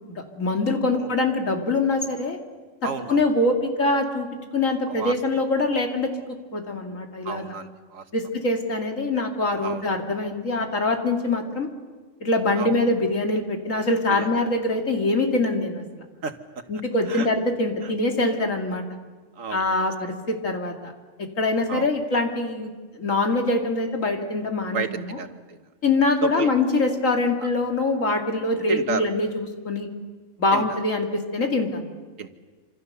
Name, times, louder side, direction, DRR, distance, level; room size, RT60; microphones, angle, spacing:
voice 1, 0.3-2.4 3.1-4.3 4.5-7.4 8.1-11.7 12.2-15.8 16.7-18.8 19.5-20.9 21.4-22.7 23.0-25.2 25.8-29.9 30.4-31.8, left 2 dB, 90° left, 3 dB, 2.9 m, -24 dB
voice 2, 2.8-3.2 4.9-5.1 7.2-8.1 9.6-9.8 12.6-12.8 14.1-14.3 16.2-16.4 17.1-17.3 17.8-17.9 19.4-19.9 21.7-21.9 24.7-25.6 26.2-26.5 28.7-29.1 30.5-30.6 32.2-32.3, right 5 dB, 85° right, 8 dB, 1.8 m, -31 dB
27.0 x 26.5 x 6.8 m, 1.4 s
omnidirectional pair, 1.3 m